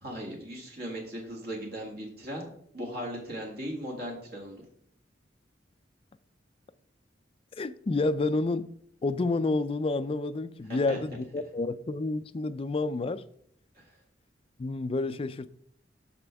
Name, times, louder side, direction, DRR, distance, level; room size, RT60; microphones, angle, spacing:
voice 1, 0.0-2.5 2.7-4.6 10.7-11.0 13.8-13.9, equal, 60° right, 2.0 m, -38 dB
voice 2, 7.6-8.7 9.0-13.2 14.6-15.5, left 2 dB, 30° left, 0.4 m, -29 dB
13.0 x 4.4 x 3.5 m
head